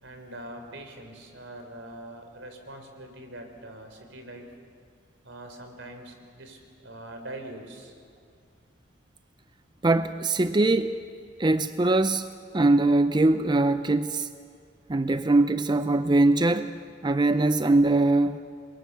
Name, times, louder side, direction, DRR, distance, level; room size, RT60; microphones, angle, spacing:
voice 1, 0.0-4.5 5.2-7.9, right 1 dB, 80° right, 5 dB, 3.8 m, -43 dB
voice 2, 9.8-11.0 11.4-12.3 12.5-14.3 14.9-18.4, right 2 dB, 25° right, 10 dB, 0.5 m, -22 dB
28.5 x 22.5 x 7.0 m, 2.3 s
head